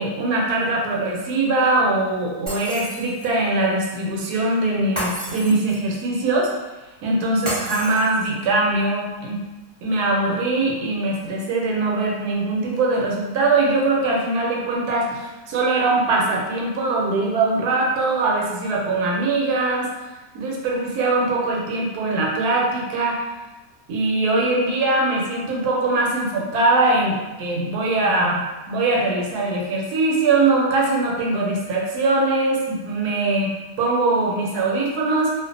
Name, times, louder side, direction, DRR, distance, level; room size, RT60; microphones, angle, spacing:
voice 1, 0.0-6.5 7.0-9.4 9.8-19.9 20.3-23.2 23.9-35.3, right 2 dB, 80° right, -2 dB, 1.1 m, -22 dB
Shatter, 2.5-3.4 5.0-5.9 7.5-8.5, equal, 15° right, 0.8 m, -31 dB
2.4 x 2.4 x 2.5 m, 1.1 s
omnidirectional pair, 1.7 m